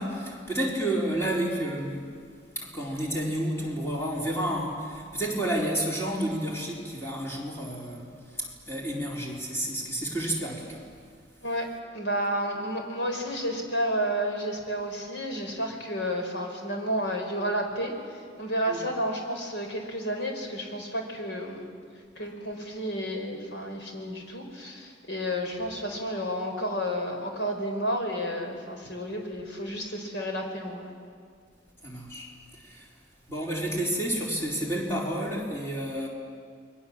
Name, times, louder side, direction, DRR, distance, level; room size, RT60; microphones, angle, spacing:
voice 1, 0.0-2.1 2.6-11.0 18.7-18.8 31.8-32.3 32.5-32.9 33.3-36.1, right 1 dB, 15° left, -3 dB, 4.1 m, -30 dB
voice 2, 11.9-21.7 22.2-30.9, equal, 65° left, 3 dB, 4.5 m, -31 dB
29.5 x 22.0 x 7.5 m, 2.1 s
head